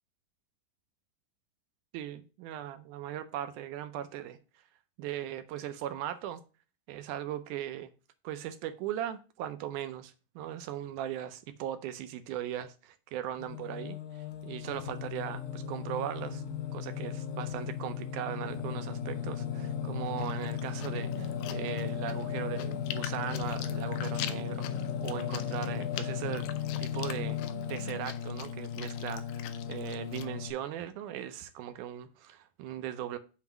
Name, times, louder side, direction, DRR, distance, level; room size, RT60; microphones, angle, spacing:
voice 1, 1.9-4.4 5.0-6.4 6.9-7.9 8.2-16.4 16.7-26.5 26.8-27.4 27.7-33.2, right 11 dB, 80° right, 1.9 m, -38 dB
Singing, 13.4-30.5, left 8 dB, 70° left, 2.5 m, -36 dB
Chewing mastication, 20.2-30.3, left 12 dB, 85° left, 2.3 m, -45 dB
7.2 x 2.9 x 5.8 m
omnidirectional pair, 3.9 m